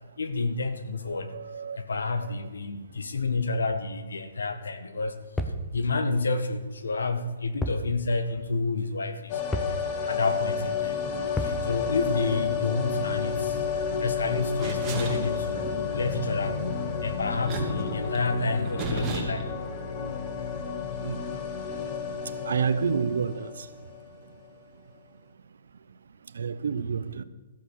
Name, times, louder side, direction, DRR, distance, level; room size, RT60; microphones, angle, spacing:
voice 1, 0.2-1.4 1.7-5.2 5.7-9.4 10.0-11.0 11.4-13.6 14.0-19.4 19.7-20.2 22.2-22.6, left 3 dB, 90° left, 1.6 m, -30 dB
voice 2, 1.3-1.8 21.0-21.2 22.4-23.7 26.3-27.2, right 6 dB, 75° right, 0.9 m, -28 dB
sound 1, 5.4-5.7 7.6-7.9 8.2-8.3 9.5-9.8 11.4-11.6, left 1 dB, 5° left, 0.9 m, -30 dB
sound 2, 9.3-24.2 24.4-24.5, left 6 dB, 30° left, 1.7 m, -31 dB
sound 3, 14.6-15.8 17.3-19.5, right 3 dB, 20° right, 2.3 m, -34 dB
14.0 x 8.1 x 6.4 m
hypercardioid pair, 150°, 0 cm